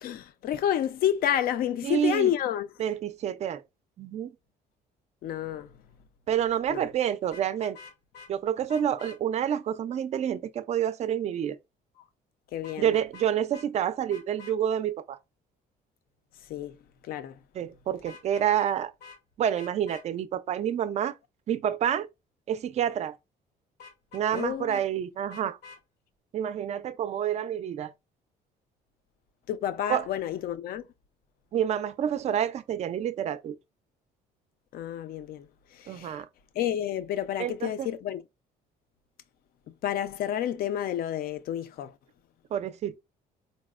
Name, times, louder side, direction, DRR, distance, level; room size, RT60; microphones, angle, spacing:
voice 1, 0.0-2.7 5.2-5.7 6.7-6.8 12.5-12.9 16.5-16.8 17.1-17.4 24.3-24.8 29.5-30.9 34.7-36.2 36.5-38.2 39.8-41.9, left 10 dB, 60° left, 0.4 m, -30 dB
voice 2, 1.8-2.3 2.8-3.6 4.0-4.3 6.3-7.8 8.3-11.6 12.8-15.2 17.5-18.9 19.4-21.2 21.5-22.1 22.5-23.2 24.1-25.6 26.3-27.9 29.9-30.1 31.5-33.6 35.9-36.3 37.4-37.9 42.5-43.0, right 9 dB, 40° right, 0.4 m, -28 dB
Vehicle horn car horn honking, 7.2-8.3 8.7-9.2 12.6-13.3 13.5-13.7 14.1-14.5 18.0-18.7 19.0-19.2 19.5-20.0 23.8-24.8 25.3-25.8, left 5 dB, 80° left, 0.9 m, -48 dB
4.0 x 2.0 x 2.3 m
cardioid pair, 110°, 17 cm